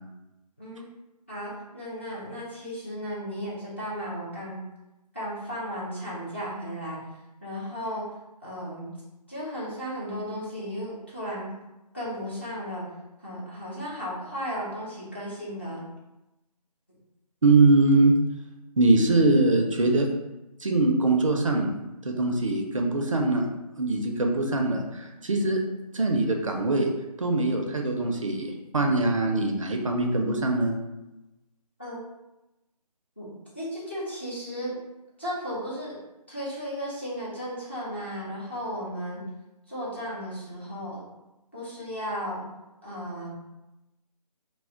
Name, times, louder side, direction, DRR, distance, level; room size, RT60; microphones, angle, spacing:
voice 1, 1.3-4.6 5.1-7.0 7.4-8.0 8.4-8.9 9.3-11.6 11.9-12.9 13.2-15.8 31.8-32.0 33.2-34.8 35.2-36.0 36.3-39.2 39.7-41.1 41.5-42.4 42.8-43.3, equal, 20° left, -8 dB, 0.4 m, -35 dB
voice 2, 17.4-18.2 18.8-20.1 20.6-21.7 22.1-23.5 23.8-25.6 25.9-26.9 27.2-30.8, right 2 dB, 50° right, 2 dB, 0.4 m, -22 dB
2.1 x 2.0 x 3.5 m, 0.98 s
figure-of-eight pair, 150°, 21 cm